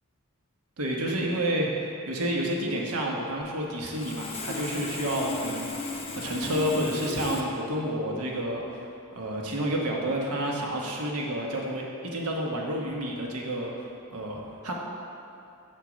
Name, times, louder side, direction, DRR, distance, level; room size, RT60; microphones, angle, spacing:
voice 1, 0.8-1.7 2.1-8.6 9.1-13.7 14.1-14.7, right 1 dB, 85° right, -1 dB, 1.1 m, -30 dB
Sawing, 3.4-3.5 3.9-7.4, left 3 dB, 25° left, 0.6 m, -35 dB
7.3 x 4.4 x 6.2 m, 2.6 s
head